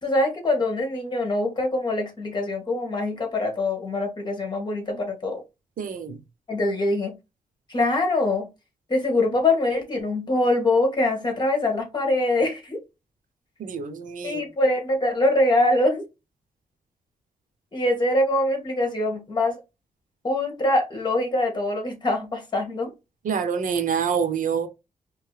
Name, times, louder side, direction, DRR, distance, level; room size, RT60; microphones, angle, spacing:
voice 1, 0.0-5.4 6.5-7.1 7.7-8.5 8.9-12.8 14.2-16.0 17.7-19.6 20.2-22.9, left 2 dB, 30° left, 1.7 m, -23 dB
voice 2, 5.8-6.2 13.6-14.4 23.2-24.7, right 7 dB, 75° right, 0.8 m, -26 dB
4.5 x 3.2 x 3.3 m
wide cardioid pair, 165°, 14 cm